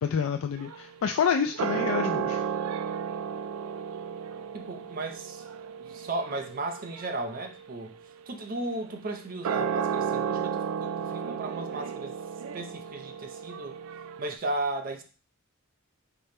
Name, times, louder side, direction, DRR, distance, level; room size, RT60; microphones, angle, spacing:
voice 1, 0.0-2.4, left 7 dB, 70° left, 6 dB, 0.3 m, -28 dB
sound 1, 0.6-14.4, right 7 dB, 85° right, 0.3 m, -34 dB
voice 2, 4.5-5.4 5.8-8.0 8.3-12.2 12.5-13.8 14.2-15.0, right 2 dB, 40° right, 5 dB, 0.6 m, -35 dB
5.1 x 2.2 x 4.2 m, 0.36 s
head